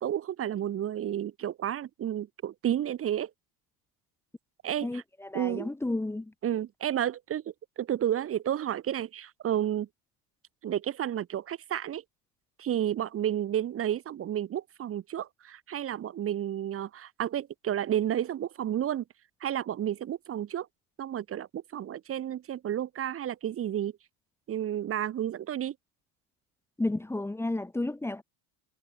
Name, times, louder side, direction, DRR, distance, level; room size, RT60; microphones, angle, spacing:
voice 1, 0.0-3.3 4.6-5.0 5.3-5.7 6.4-7.4 7.8-9.9 10.6-12.0 12.6-19.0 19.4-20.7 21.0-23.9 24.5-25.7, right 10 dB, 30° right, 2.2 m, -31 dB
voice 2, 4.8-6.3 26.8-28.2, left 2 dB, 5° left, 2.1 m, -32 dB
cardioid pair, 165°, 46 cm